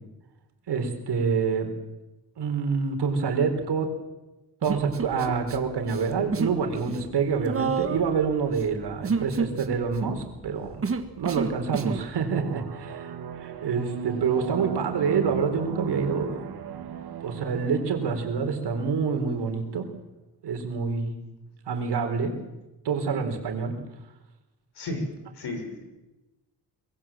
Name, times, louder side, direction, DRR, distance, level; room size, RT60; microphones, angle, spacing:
voice 1, 0.7-1.7 2.4-3.9 4.6-10.8 11.2-13.1 13.4-16.4 16.7-16.8 17.2-19.9 20.4-21.1 21.7-22.3 22.8-23.7, right 5 dB, 85° right, 5 dB, 4.2 m, -27 dB
Human voice, 4.6-5.6 5.8-6.6 6.9-12.1, right 5 dB, 35° right, 1.6 m, -30 dB
sound 1, 12.3-19.7, right 8 dB, 70° right, 1.9 m, -37 dB
voice 2, 24.8-25.8, left 1 dB, 80° left, 5 dB, 5.9 m, -33 dB
24.0 x 21.0 x 7.6 m, 1.0 s
wide cardioid pair, 160°, 39 cm